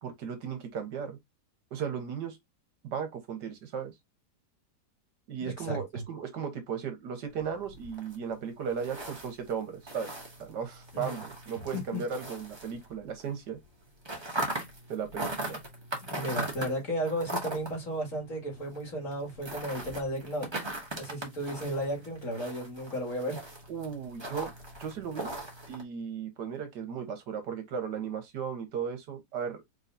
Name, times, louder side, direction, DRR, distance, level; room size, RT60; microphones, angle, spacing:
voice 1, 0.0-1.2 1.7-2.4 2.8-3.9 5.3-10.1 10.4-13.6 14.9-15.6 23.7-24.5 24.8-25.3 25.7-29.6, right 7 dB, 75° right, 1.8 m, -36 dB
voice 2, 5.6-6.0 10.9-11.2 11.7-12.0 16.1-20.5 21.0-23.4, equal, 50° left, 2.7 m, -34 dB
sound 1, 7.3-13.3 13.5-25.8, right 1 dB, 15° right, 1.3 m, -40 dB
4.7 x 4.0 x 2.7 m
omnidirectional pair, 1.8 m